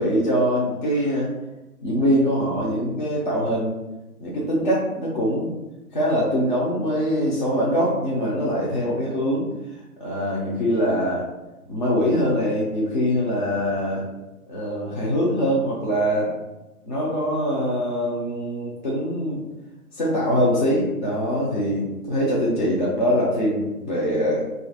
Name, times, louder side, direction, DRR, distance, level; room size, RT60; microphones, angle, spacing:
voice 1, 0.0-1.3 1.8-3.8 4.2-5.5 5.9-9.5 10.0-11.3 11.7-14.0 14.5-16.3 16.9-19.5 19.9-24.5, equal, 35° left, -5 dB, 0.5 m, -23 dB
2.8 x 2.5 x 4.1 m, 1.0 s
figure-of-eight pair, 145°, 45 cm